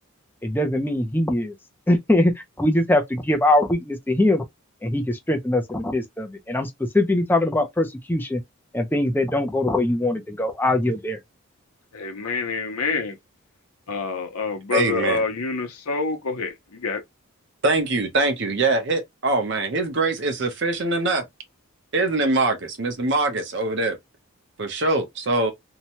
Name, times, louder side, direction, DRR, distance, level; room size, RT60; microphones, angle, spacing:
voice 1, 0.4-1.5 1.9-2.3 2.6-4.4 4.8-8.4 8.7-11.2, left 1 dB, 10° left, 0.5 m, -22 dB
voice 2, 11.9-13.2 13.9-17.0, left 4 dB, 85° left, 0.7 m, -27 dB
voice 3, 14.7-15.2 17.6-21.2 21.9-24.0 24.6-25.5, right 2 dB, 55° right, 0.8 m, -23 dB
2.8 x 2.2 x 2.9 m
head